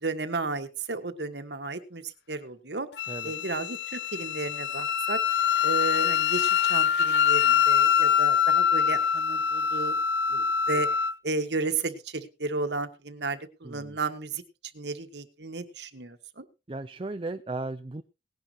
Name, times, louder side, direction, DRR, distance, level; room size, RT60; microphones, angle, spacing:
voice 1, 0.0-2.9 3.2-5.2 5.6-10.0 10.3-10.9 11.2-14.4 14.7-16.4, right 3 dB, 80° right, 9 dB, 1.6 m, -33 dB
Wind instrument woodwind instrument, 3.0-11.1, left 8 dB, 80° left, 0.6 m, -24 dB
voice 2, 13.6-14.0 16.7-18.0, right 2 dB, 30° right, 10 dB, 0.5 m, -36 dB
18.5 x 10.5 x 3.0 m, 0.29 s
head